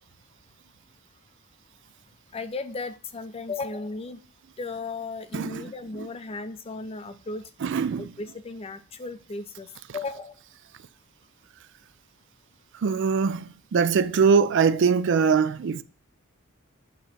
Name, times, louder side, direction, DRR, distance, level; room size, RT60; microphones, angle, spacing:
voice 1, 2.3-4.2 4.6-7.4 8.0-10.4, left 3 dB, 25° left, 0.4 m, -35 dB
voice 2, 5.3-6.1 7.6-8.1 9.9-10.0 12.7-15.8, right 5 dB, 55° right, 0.4 m, -23 dB
8.6 x 3.0 x 5.7 m
head